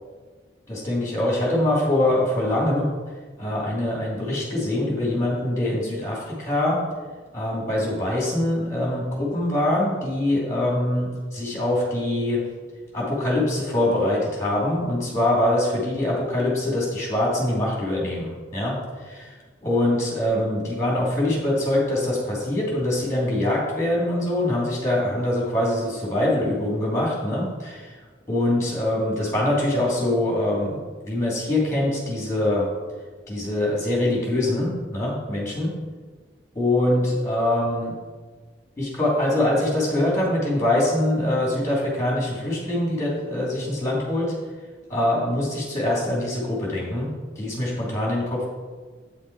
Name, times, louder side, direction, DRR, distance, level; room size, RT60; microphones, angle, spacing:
voice 1, 0.7-3.0 3.4-6.8 7.3-12.4 12.9-28.0 28.3-30.8 31.1-32.7 33.3-35.7 36.5-37.9 38.8-44.3 44.9-47.1 47.4-48.4, left 1 dB, 15° left, -4 dB, 2.6 m, -24 dB
8.6 x 5.9 x 4.7 m, 1.4 s
head